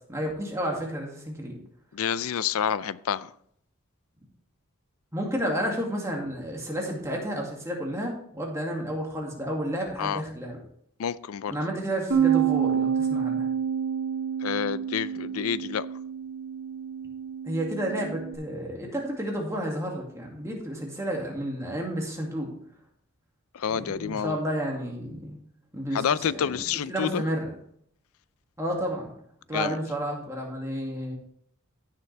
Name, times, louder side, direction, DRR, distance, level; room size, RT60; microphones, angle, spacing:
voice 1, 0.1-1.6 5.1-10.6 11.5-13.5 17.4-22.5 23.7-25.4 25.7-26.6 26.9-27.6 28.6-29.1 29.5-31.1, equal, 15° right, 2.1 m, -31 dB
voice 2, 1.9-3.3 10.0-10.2 11.0-11.6 14.4-15.9 23.5-24.4 25.9-27.2 29.5-29.8, left 8 dB, 80° left, 0.4 m, -28 dB
Bass guitar, 12.1-18.4, right 8 dB, 80° right, 2.4 m, -28 dB
15.5 x 6.8 x 3.3 m
head